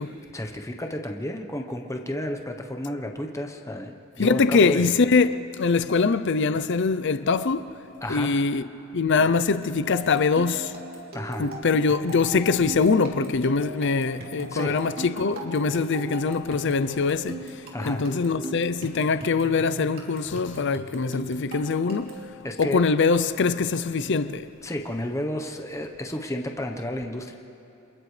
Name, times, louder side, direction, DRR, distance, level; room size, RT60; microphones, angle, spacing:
voice 1, 0.3-5.0 8.0-8.5 11.1-11.5 14.5-14.8 17.7-18.1 22.4-22.8 24.6-27.3, left 1 dB, 15° left, 1.0 m, -32 dB
voice 2, 4.2-7.6 8.1-8.6 8.9-10.7 11.4-17.4 17.9-22.2 22.6-24.5, left 4 dB, 55° left, 0.5 m, -23 dB
sound 1, 10.0-22.3, right 1 dB, 45° right, 3.1 m, -39 dB
29.0 x 27.0 x 3.3 m
head